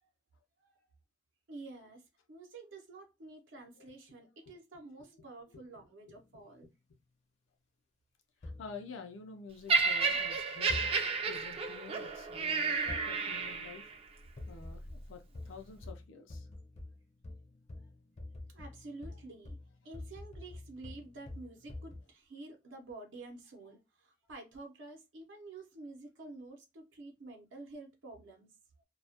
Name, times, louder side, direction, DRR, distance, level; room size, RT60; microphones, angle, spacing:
voice 1, 1.5-6.7 18.5-19.6 19.8-28.5, right 2 dB, 80° right, 0.6 m, -49 dB
sound 1, 6.1-6.7 8.4-9.8 10.7-11.6 12.9-13.7 14.4-22.0, left 2 dB, 35° left, 0.4 m, -48 dB
voice 2, 8.4-10.8 11.3-13.9 14.5-16.5, left 4 dB, 90° left, 0.5 m, -49 dB
Laughter, 9.7-13.9 14.7-14.9, right 4 dB, 30° right, 0.3 m, -32 dB
2.2 x 2.0 x 2.7 m
head